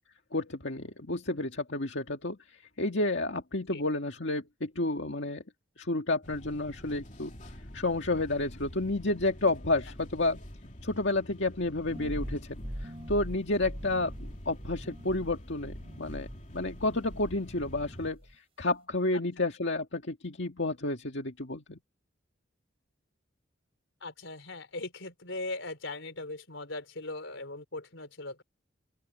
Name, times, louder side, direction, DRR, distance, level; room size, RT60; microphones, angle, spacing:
voice 1, 0.3-2.4 2.8-5.4 5.8-7.3 7.7-10.4 10.8-16.3 16.5-18.2 18.6-21.8, left 2 dB, 70° left, 1.9 m, -30 dB
sound 1, 6.2-18.1, equal, 40° left, 2.8 m, -47 dB
sound 2, 11.9-17.4 17.6-18.3, equal, 30° right, 3.5 m, -42 dB
voice 2, 24.0-28.4, left 2 dB, 90° left, 3.9 m, -39 dB
open air
head